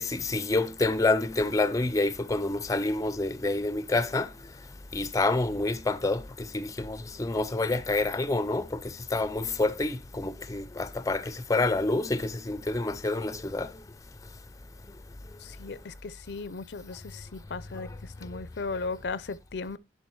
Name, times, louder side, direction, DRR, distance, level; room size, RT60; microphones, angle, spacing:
voice 1, 0.0-4.3 4.9-13.7, left 2 dB, 20° left, 0.5 m, -28 dB
voice 2, 15.4-19.8, left 4 dB, 70° left, 0.5 m, -37 dB
11.0 x 5.1 x 4.6 m
head